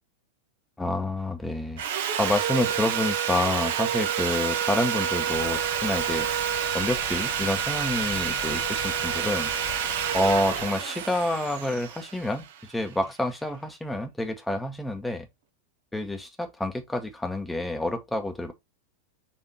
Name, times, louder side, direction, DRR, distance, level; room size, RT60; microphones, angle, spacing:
voice 1, 0.8-1.8 2.2-6.3 6.7-9.5 10.1-15.3 15.9-18.5, left 1 dB, 5° left, 0.9 m, -28 dB
Sawing, 1.8-12.8, right 9 dB, 55° right, 0.6 m, -28 dB
sound 1, 5.3-10.7, left 9 dB, 45° left, 0.6 m, -42 dB
4.5 x 2.8 x 4.1 m
figure-of-eight pair, 90°, 0 cm